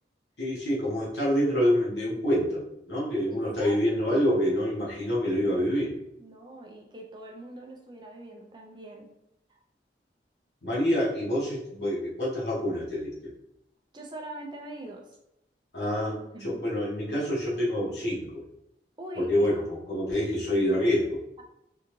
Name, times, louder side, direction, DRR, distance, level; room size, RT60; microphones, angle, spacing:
voice 1, 0.4-5.9 10.6-13.3 15.7-18.4 19.2-21.2, equal, 75° left, -6 dB, 1.1 m, -27 dB
voice 2, 3.3-4.2 6.2-9.1 9.5-9.6 13.9-15.1 16.3-16.6 19.0-19.3, right 1 dB, 25° right, 0 dB, 0.5 m, -43 dB
3.5 x 2.4 x 3.0 m, 0.82 s
head